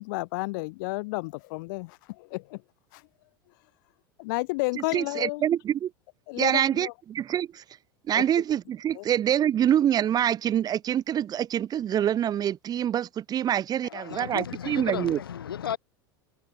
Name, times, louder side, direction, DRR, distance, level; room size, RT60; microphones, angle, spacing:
voice 1, 0.0-2.6 2.9-3.0 4.2-5.4 6.3-6.9 8.2-8.3 8.9-9.0, left 26 dB, 60° left, 1.2 m, -31 dB
voice 2, 4.7-5.9 6.4-7.6 8.1-15.2, right 10 dB, 35° right, 1.3 m, -26 dB
voice 3, 13.8-15.8, left 9 dB, 75° left, 1.5 m, -34 dB
figure-of-eight pair, 80°, 12 cm